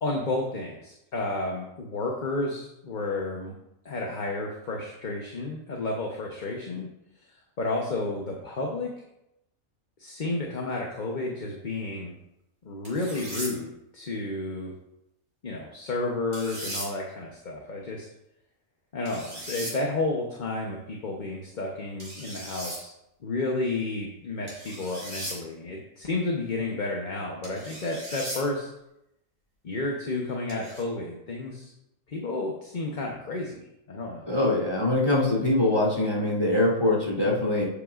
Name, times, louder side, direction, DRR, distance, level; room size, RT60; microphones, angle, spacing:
voice 1, 0.0-3.5 3.8-6.9 7.3-8.9 10.0-12.1 12.6-14.7 15.4-18.1 18.9-22.9 23.2-28.7 29.6-31.7 32.1-34.3, left 2 dB, 40° left, 0 dB, 1.0 m, -31 dB
sound 1, 12.8-13.5 16.3-16.9 19.1-19.7 22.0-22.8 24.5-25.4 27.4-28.4 30.5-30.8, right 1 dB, 40° right, 4.1 m, -37 dB
voice 2, 34.3-37.6, left 2 dB, 20° left, -3 dB, 3.0 m, -23 dB
11.0 x 8.2 x 2.5 m, 0.84 s
omnidirectional pair, 1.4 m